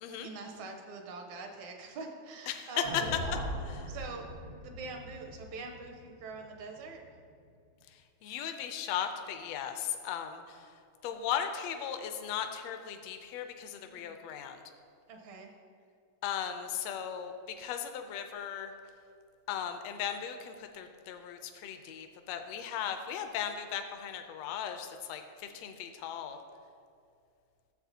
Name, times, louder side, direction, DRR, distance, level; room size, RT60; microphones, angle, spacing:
voice 1, 0.1-3.0 3.9-4.3 4.6-7.0 13.9-14.2 15.1-15.5, right 3 dB, 80° right, 3 dB, 2.2 m, -44 dB
sound 1, 2.8-7.1, equal, 55° right, 0.8 m, -40 dB
voice 2, 8.2-10.6 11.0-14.6 16.2-18.7 19.5-26.4, left 9 dB, 75° left, 6 dB, 1.7 m, -37 dB
14.0 x 7.5 x 2.8 m, 2.3 s
omnidirectional pair, 3.3 m